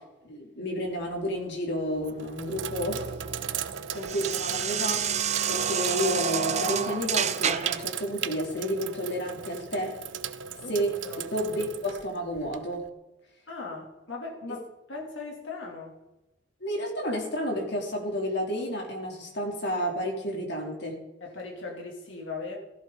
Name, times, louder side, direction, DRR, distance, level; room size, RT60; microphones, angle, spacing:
voice 1, 0.2-3.1 3.9-5.0 5.5-9.9 10.7-10.9 11.3-12.8 16.6-21.0, equal, 65° left, 3.2 m, -31 dB
Sink (filling or washing), 0.9-1.3 1.9-12.9, right 8 dB, 80° right, 0.7 m, -37 dB
sound 1, 2.0-7.9, right 7 dB, 40° right, 0.8 m, -30 dB
voice 2, 13.5-16.0 21.2-22.6, left 3 dB, 85° left, 2.8 m, -39 dB
16.0 x 15.5 x 3.9 m
head